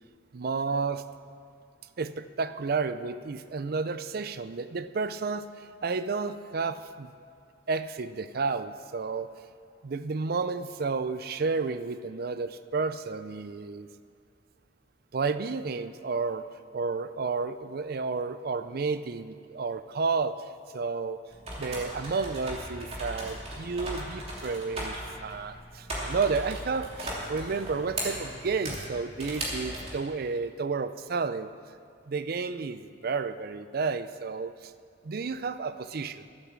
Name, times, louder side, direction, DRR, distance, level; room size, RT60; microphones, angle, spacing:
voice 1, 0.3-1.0 2.0-7.1 7.7-9.3 9.8-13.9 15.1-16.5 16.7-20.4 20.7-21.2 21.6-31.5 32.1-34.7 35.0-36.3, right 4 dB, 55° right, 12 dB, 0.5 m, -31 dB
sound 1, 21.3-29.9, right 1 dB, 35° right, 2.9 m, -37 dB
12.0 x 8.9 x 7.5 m, 2.3 s
head